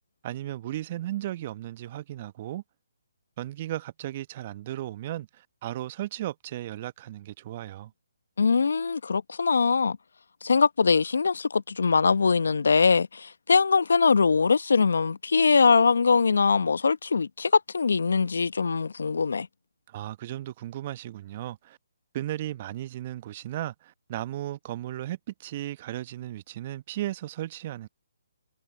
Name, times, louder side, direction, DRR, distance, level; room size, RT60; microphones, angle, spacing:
voice 1, 0.2-2.6 3.4-7.9 19.9-21.8 22.1-27.9, right 14 dB, 40° right, 1.2 m, -35 dB
voice 2, 8.4-10.0 10.4-19.5, left 5 dB, 70° left, 0.9 m, -22 dB
figure-of-eight pair, 140°, 0 cm